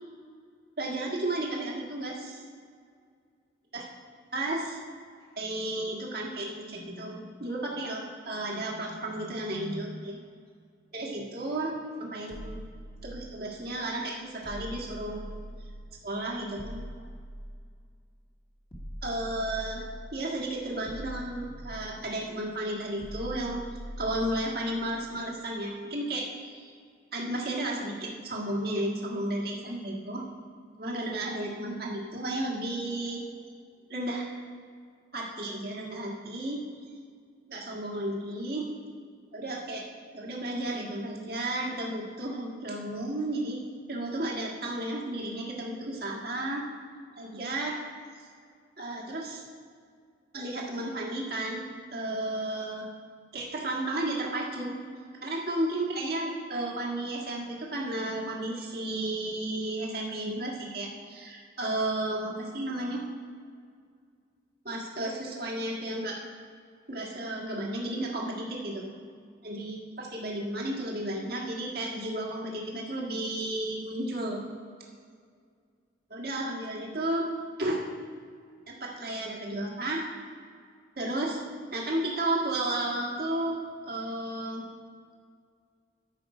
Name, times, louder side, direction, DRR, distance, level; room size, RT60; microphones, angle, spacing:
voice 1, 0.8-2.4 3.7-3.8 4.3-4.8 5.4-10.2 10.9-11.7 12.0-12.6 13.0-15.3 16.0-16.8 19.0-23.6 24.0-26.7 27.1-30.2 30.8-33.2 33.9-34.4 35.1-36.6 37.5-38.7 39.3-39.8 40.1-43.6 43.9-46.7 47.2-47.8 48.8-49.4 50.3-51.6 51.9-52.9 53.3-54.8 55.2-63.0 64.7-66.2 66.9-68.9 69.4-74.4 76.1-77.3 77.6-77.9 78.7-80.1 81.0-81.4 81.7-83.6 83.9-84.7, right 1 dB, 55° right, -2 dB, 1.8 m, -33 dB
sound 1, 12.3-13.6 14.4-16.1 16.6-18.0 18.7-20.3 20.8-22.2 23.0-24.6, equal, 30° left, 1.7 m, -42 dB
13.5 x 5.8 x 5.0 m, 2.1 s
head